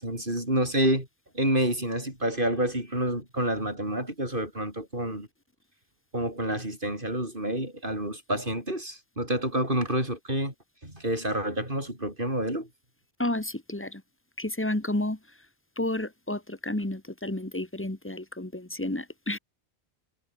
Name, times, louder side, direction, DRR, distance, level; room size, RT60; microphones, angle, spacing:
voice 1, 0.0-1.1 1.3-5.3 6.1-10.5 10.8-12.7, right 1 dB, 50° right, 8.3 m, -28 dB
voice 2, 13.2-14.0 14.4-15.2 15.8-19.4, left 1 dB, 10° left, 1.9 m, -31 dB
omnidirectional pair, 1.1 m